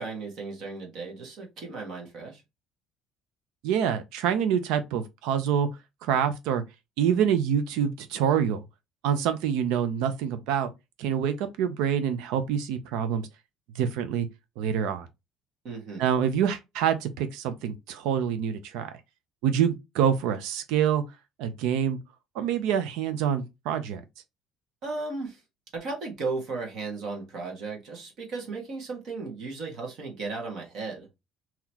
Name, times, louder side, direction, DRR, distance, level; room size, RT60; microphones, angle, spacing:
voice 1, 0.0-2.4 15.6-16.1 24.8-25.4 25.7-31.1, right 3 dB, 45° right, 1.5 m, -35 dB
voice 2, 3.6-5.7 6.0-6.6 7.0-8.6 9.0-10.7 11.0-13.3 13.7-14.3 14.6-15.1 16.0-18.9 19.4-21.0 21.4-22.0 22.3-24.0, right 8 dB, 85° right, 0.6 m, -26 dB
3.9 x 2.9 x 2.9 m
cardioid pair, 180°, 0 cm